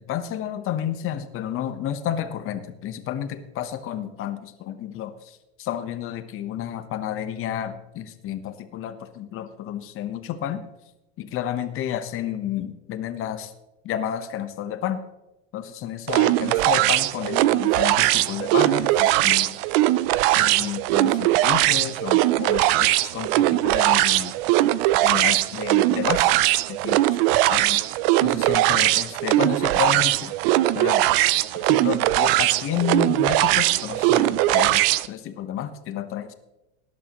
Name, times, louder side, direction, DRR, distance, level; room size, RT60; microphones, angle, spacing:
voice 1, 0.0-10.6 11.2-13.5 13.8-15.0 15.5-19.5 20.3-24.4 25.0-26.3 26.7-27.0 27.5-27.8 28.2-30.3 30.7-31.1 31.5-36.3, left 10 dB, 35° left, 9 dB, 1.1 m, -31 dB
sound 1, 16.1-35.1, right 16 dB, 55° right, 0.5 m, -20 dB
18.5 x 11.0 x 3.1 m, 0.98 s
supercardioid pair, 135°, 36 cm